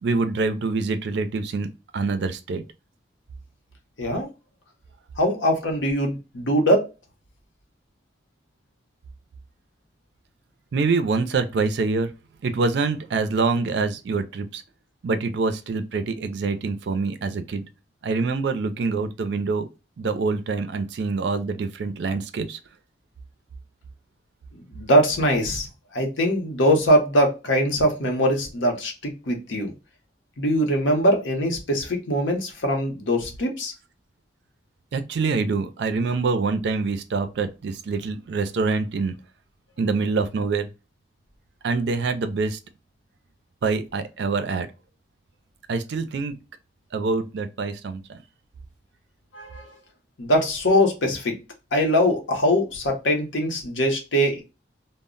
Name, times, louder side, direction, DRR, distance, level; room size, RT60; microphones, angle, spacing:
voice 1, 0.0-1.7 1.9-2.6 10.7-12.1 12.4-14.6 15.0-17.7 18.0-19.7 20.0-22.6 34.9-39.2 39.8-40.7 41.6-42.6 43.6-44.7 45.7-46.3 46.9-48.2, right 4 dB, 60° right, 0.4 m, -25 dB
voice 2, 4.0-4.3 5.2-6.9 24.5-25.7 25.9-29.7 30.4-33.7 49.3-49.6 50.2-51.4 51.7-54.4, equal, 75° left, 0.7 m, -22 dB
2.1 x 2.0 x 3.6 m
head